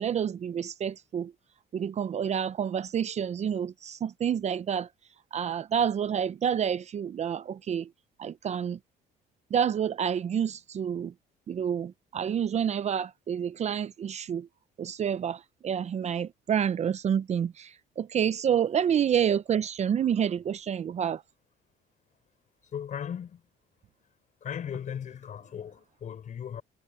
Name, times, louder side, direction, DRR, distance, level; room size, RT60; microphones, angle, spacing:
voice 1, 0.0-1.3 1.7-4.9 5.3-7.9 8.2-8.8 9.5-11.1 11.5-14.5 14.8-21.2, right 8 dB, 40° right, 0.7 m, -28 dB
voice 2, 22.6-23.4 24.4-26.6, left 8 dB, 50° left, 4.7 m, -37 dB
cardioid pair, 110°, 17 cm